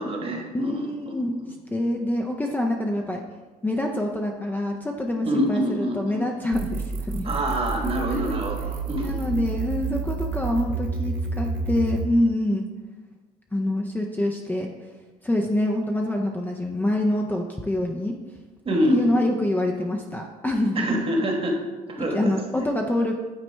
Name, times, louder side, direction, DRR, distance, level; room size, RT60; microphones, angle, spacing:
voice 1, 0.0-1.1 5.2-6.2 7.2-9.3 18.6-19.3 20.7-21.6 21.9-22.6, equal, 35° right, 1 dB, 1.3 m, -26 dB
voice 2, 0.5-1.4 1.7-3.2 3.6-7.3 8.1-8.4 9.0-12.7 13.5-14.7 15.2-18.2 18.9-20.9 22.1-23.1, left 1 dB, 10° left, 1 dB, 0.5 m, -26 dB
sound 1, 6.5-12.1, right 4 dB, 55° right, 0.7 m, -29 dB
9.1 x 4.2 x 3.3 m, 1.3 s
cardioid pair, 110°, 17 cm